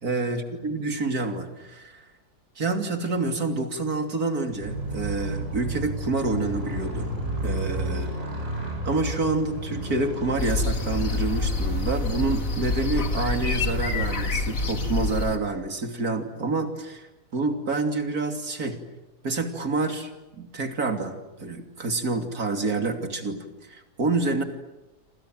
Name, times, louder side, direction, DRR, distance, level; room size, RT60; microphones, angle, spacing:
voice 1, 0.0-2.1 2.6-7.1 7.4-8.1 8.8-17.1 17.3-18.8 19.2-24.4, right 3 dB, 70° right, 5 dB, 3.3 m, -28 dB
Motorcycle, 4.4-15.1, right 1 dB, 55° right, 7.8 m, -32 dB
sound 1, 10.4-15.4, left 3 dB, 55° left, 2.6 m, -27 dB
28.0 x 27.0 x 7.8 m, 1.0 s
omnidirectional pair, 1.6 m